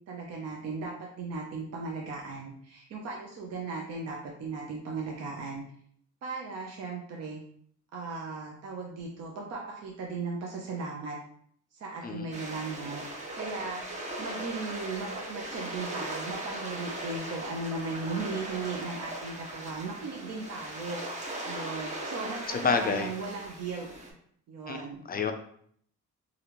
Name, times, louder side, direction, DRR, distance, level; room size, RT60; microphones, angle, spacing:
voice 1, 0.1-5.6 6.2-7.4 7.9-11.2 11.7-13.0 13.3-13.8 14.2-21.0 21.4-24.1 24.5-25.0, right 3 dB, 60° right, -1 dB, 0.6 m, -37 dB
sound 1, 12.3-24.1, right 1 dB, 25° right, 0.8 m, -39 dB
voice 2, 22.5-23.1 24.7-24.8 25.1-25.3, left 5 dB, 30° left, 6 dB, 0.4 m, -28 dB
3.3 x 2.4 x 2.9 m, 0.63 s
cardioid pair, 90°, 30 cm